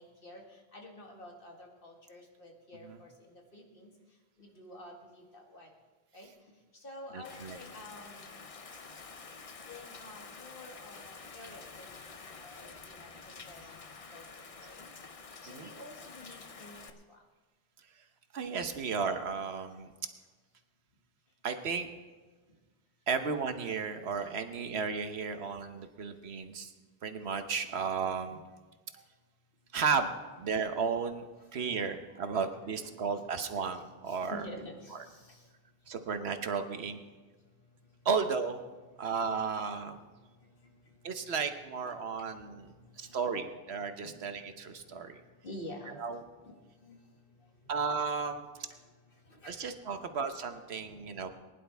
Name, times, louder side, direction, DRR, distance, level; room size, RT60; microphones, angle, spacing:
voice 1, 0.0-3.9 4.4-5.7 6.1-6.3 6.7-8.4 9.7-13.1 13.5-13.8 14.1-14.9 15.4-17.2 28.2-28.4 31.5-31.8 32.2-32.4 32.8-33.2 34.1-35.5 39.1-39.2 40.4-40.7 42.4-42.5 42.8-43.3 43.8-44.2 44.9-46.1 46.4-46.5 46.8-47.0 48.6-48.8 49.3-49.5 49.8-50.1 50.8-51.1, left 1 dB, 60° left, 0 dB, 2.2 m, -50 dB
voice 2, 7.1-7.6 15.5-15.7 18.3-19.9 21.4-21.9 23.1-26.7 27.0-28.4 29.7-30.1 30.4-31.3 31.5-34.4 34.9-35.0 35.9-37.0 38.0-38.6 39.0-40.0 41.0-45.2 46.0-46.2 47.7-48.4 49.5-51.3, right 5 dB, 85° right, 8 dB, 1.2 m, -34 dB
Rain, 7.2-16.9, left 4 dB, 40° left, 0.7 m, -49 dB
20.5 x 11.0 x 3.5 m, 1.3 s
omnidirectional pair, 1.0 m